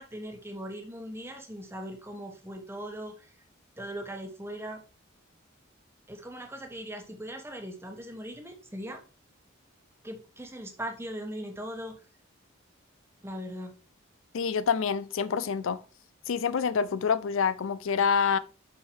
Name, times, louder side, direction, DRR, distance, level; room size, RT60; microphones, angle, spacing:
voice 1, 0.0-3.3 3.8-4.8 6.1-9.0 10.0-12.0 13.2-13.7, equal, 10° right, 1.1 m, -39 dB
voice 2, 14.3-15.8 16.3-18.4, left 6 dB, 70° left, 0.4 m, -27 dB
5.7 x 5.7 x 4.6 m
head